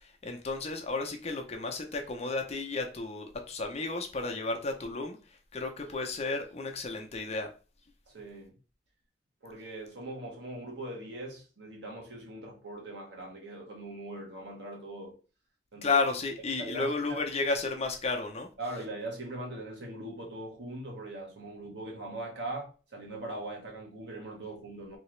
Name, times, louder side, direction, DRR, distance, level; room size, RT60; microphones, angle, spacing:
voice 1, 0.2-5.2 5.5-7.5 15.8-18.5, left 3 dB, 40° left, 0.7 m, -32 dB
voice 2, 8.1-8.5 9.4-15.1 15.7-16.0 16.6-17.2 18.6-25.0, right 1 dB, 90° right, 1.5 m, -41 dB
3.5 x 2.9 x 3.2 m
head